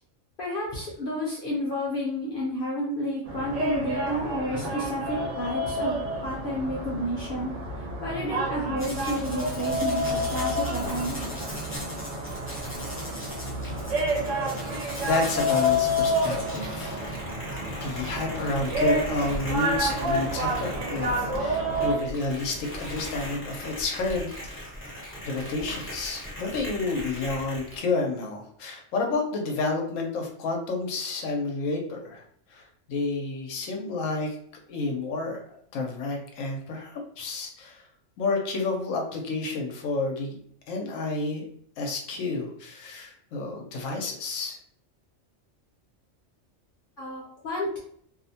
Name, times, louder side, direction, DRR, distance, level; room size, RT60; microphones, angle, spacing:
voice 1, 0.4-11.4 47.0-47.8, equal, 55° left, -4 dB, 0.7 m, -31 dB
sound 1, 3.3-22.0, equal, 70° right, 1.0 m, -29 dB
sound 2, 8.8-27.8, equal, 15° left, 0.6 m, -39 dB
voice 2, 15.1-17.0 17.8-24.6 25.2-32.2 32.5-34.4 34.7-37.8 38.2-40.3 40.7-41.4 41.8-44.6, left 3 dB, 90° left, 1 dB, 1.0 m, -30 dB
2.6 x 2.1 x 2.7 m, 0.62 s
omnidirectional pair, 1.3 m